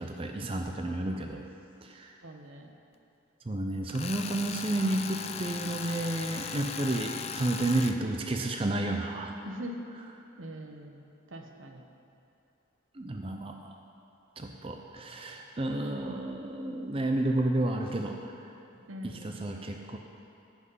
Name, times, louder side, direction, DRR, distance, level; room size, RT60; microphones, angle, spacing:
voice 1, 0.0-1.4 1.8-2.2 3.5-9.4 12.9-13.7 14.4-18.3 19.0-20.0, right 2 dB, 25° right, 3 dB, 0.5 m, -31 dB
voice 2, 2.2-2.7 9.4-9.9 10.4-11.9 18.9-19.4, equal, 70° right, 4 dB, 1.0 m, -42 dB
Tools, 3.9-8.0, left 6 dB, 30° left, 0.4 m, -38 dB
14.5 x 6.2 x 5.5 m, 2.7 s
head